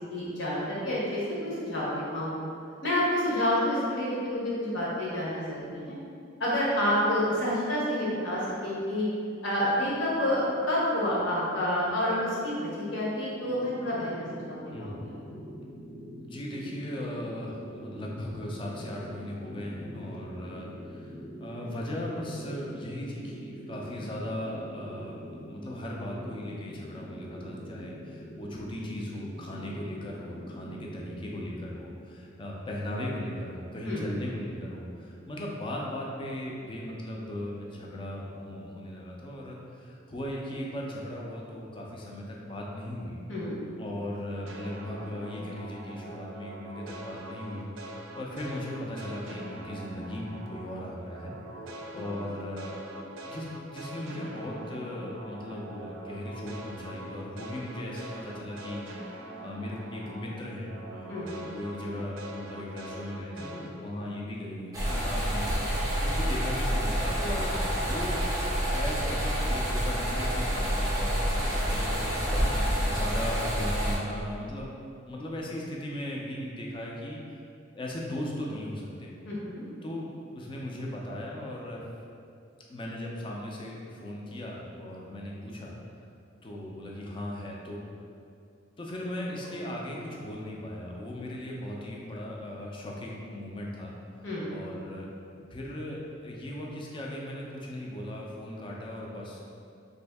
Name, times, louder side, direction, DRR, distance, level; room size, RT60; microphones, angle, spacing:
voice 1, 0.1-2.3 2.8-6.0 6.4-9.0 9.4-15.2 33.8-34.0 43.3-43.5 51.9-52.1 61.1-61.3 79.3-79.6 89.4-89.5 94.2-94.5, left 1 dB, 65° left, -7 dB, 1.0 m, -29 dB
sound 1, 13.4-31.7, equal, 45° left, 0.8 m, -44 dB
voice 2, 16.2-21.1 21.4-43.2 43.8-51.3 51.9-52.8 53.2-58.8 59.1-68.2 68.7-72.4 72.8-74.8 75.1-77.4 77.7-79.1 79.8-80.1 80.3-81.8 82.7-85.7 86.4-87.8 88.8-93.9 94.5-95.1 95.5-99.7, left 1 dB, 25° left, -2 dB, 0.4 m, -37 dB
sound 2, 44.5-50.8 51.1-60.4 60.7-63.7, right 1 dB, 70° right, 0.4 m, -43 dB
sound 3, 64.7-74.0, equal, 20° right, 0.6 m, -28 dB
3.1 x 2.6 x 3.4 m, 2.5 s
head